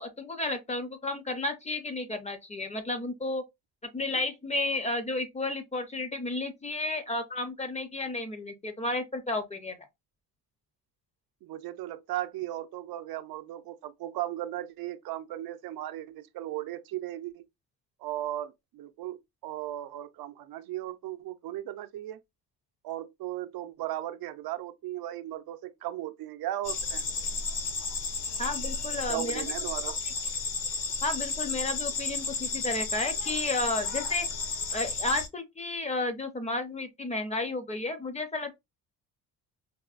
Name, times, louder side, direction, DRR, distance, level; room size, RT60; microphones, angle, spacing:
voice 1, 0.0-3.4 3.9-9.8 28.4-29.5 31.0-34.3 34.7-38.5, left 2 dB, 20° left, 0.5 m, -32 dB
voice 2, 11.4-17.4 18.0-22.2 22.8-27.0 29.1-30.0, right 14 dB, 70° right, 0.5 m, -36 dB
sound 1, 26.6-35.3, left 4 dB, 55° left, 0.9 m, -33 dB
4.7 x 2.0 x 2.4 m
cardioid pair, 130°, 38 cm